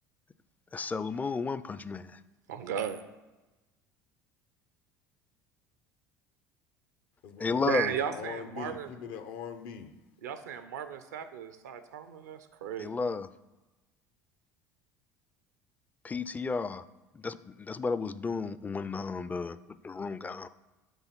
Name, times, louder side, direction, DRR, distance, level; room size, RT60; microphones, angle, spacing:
voice 1, 0.7-2.2 7.4-7.9 12.8-13.3 16.0-16.8 17.1-19.6 19.8-20.5, left 4 dB, 20° left, 14 dB, 0.4 m, -33 dB
voice 2, 2.5-3.0 7.6-8.9 10.2-12.9, right 8 dB, 85° right, 10 dB, 0.6 m, -35 dB
voice 3, 7.2-9.9, left 7 dB, 65° left, 8 dB, 0.8 m, -42 dB
7.1 x 3.5 x 5.8 m, 1.1 s
hypercardioid pair, 75°, 9 cm